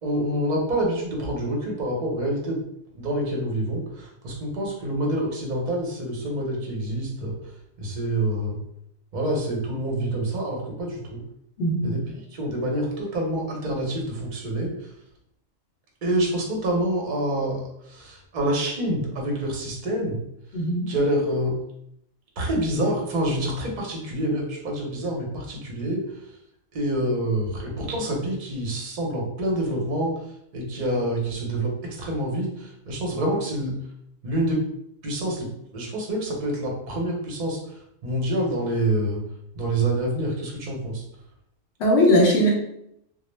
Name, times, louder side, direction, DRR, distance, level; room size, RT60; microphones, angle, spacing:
voice 1, 0.0-2.6 3.0-7.4 7.8-8.6 9.1-11.2 11.8-14.7 16.0-17.6 17.9-20.2 20.9-21.5 22.4-26.0 26.7-30.1 30.5-33.7 34.2-34.6 35.0-37.6 38.0-39.2 39.5-41.0, right 1 dB, 45° right, -1 dB, 0.6 m, -27 dB
voice 2, 11.6-11.9 20.5-20.9 41.8-42.5, equal, 65° left, -1 dB, 0.8 m, -19 dB
2.2 x 2.0 x 3.0 m, 0.75 s
omnidirectional pair, 1.3 m